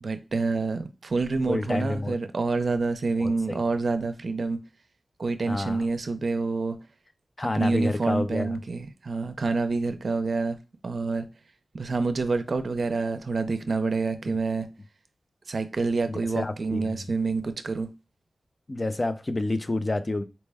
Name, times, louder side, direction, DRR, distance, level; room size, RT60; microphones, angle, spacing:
voice 1, 0.0-4.6 5.2-6.8 7.5-10.6 10.8-11.3 11.7-14.7 15.5-17.9, right 3 dB, 65° right, 0.5 m, -27 dB
voice 2, 1.5-2.2 3.2-3.6 5.5-5.8 7.4-8.6 16.1-17.0 18.7-20.2, left 2 dB, 35° left, 0.4 m, -29 dB
4.2 x 2.1 x 3.4 m
wide cardioid pair, 75°, 0 cm